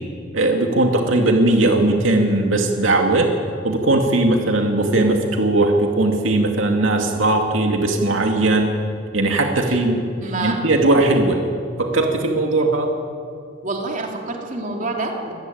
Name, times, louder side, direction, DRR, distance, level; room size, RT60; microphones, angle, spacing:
voice 1, 0.3-3.3 3.6-8.7 9.1-10.1 10.4-11.4 11.8-12.9, right 2 dB, 80° right, 2 dB, 2.3 m, -18 dB
voice 2, 10.2-10.6 13.6-15.3, right 2 dB, 45° right, 1 dB, 3.2 m, -27 dB
25.0 x 16.0 x 9.4 m, 2.5 s
head